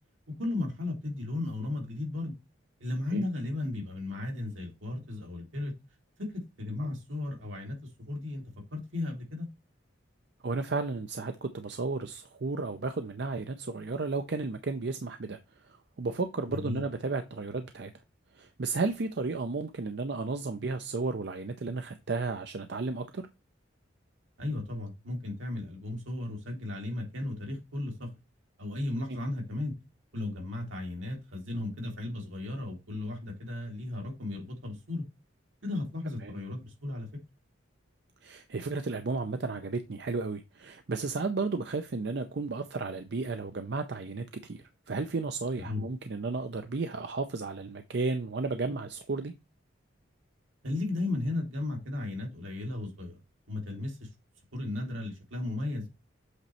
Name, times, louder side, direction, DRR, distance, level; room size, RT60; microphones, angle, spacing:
voice 1, 0.4-2.3 2.8-5.7 6.2-8.4 8.7-9.5 16.5-16.8 24.4-28.1 28.6-29.7 30.1-35.0 35.6-37.1 45.6-45.8 50.6-53.2 53.5-54.1 54.5-55.9, left 2 dB, 80° right, 2.3 m, -35 dB
voice 2, 10.4-15.4 16.0-17.9 18.3-23.2 36.2-36.4 38.2-49.3, right 3 dB, 55° right, 0.5 m, -33 dB
8.0 x 3.1 x 4.2 m
head